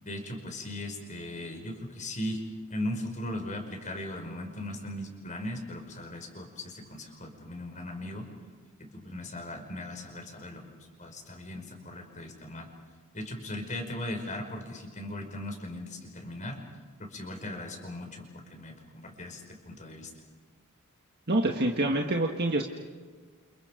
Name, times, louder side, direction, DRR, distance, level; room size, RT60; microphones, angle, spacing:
voice 1, 0.0-2.4 2.7-8.3 8.8-10.6 11.0-12.7 13.1-16.6 17.0-20.1, left 1 dB, 35° left, 3 dB, 5.3 m, -38 dB
voice 2, 21.3-22.6, right 1 dB, 50° right, 1 dB, 1.8 m, -26 dB
30.0 x 28.5 x 5.3 m, 1.5 s
head